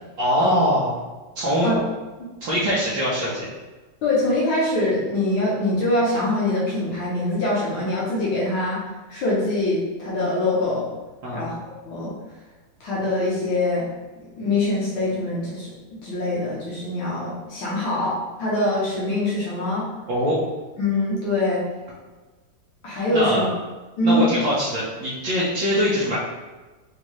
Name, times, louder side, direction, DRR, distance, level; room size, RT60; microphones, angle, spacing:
voice 1, 0.2-1.0 1.3-1.7 2.4-3.5 11.2-11.4 20.1-20.4 23.1-23.5 24.0-26.2, equal, 65° right, -8 dB, 1.5 m, -22 dB
voice 2, 4.0-8.8 9.1-10.9 11.3-11.6 11.8-12.1 12.8-13.9 14.4-15.7 16.0-19.9 20.8-21.6 22.8-23.5 24.0-24.2, left 1 dB, 70° left, -6 dB, 1.7 m, -23 dB
5.1 x 2.8 x 3.1 m, 1.2 s
omnidirectional pair, 2.4 m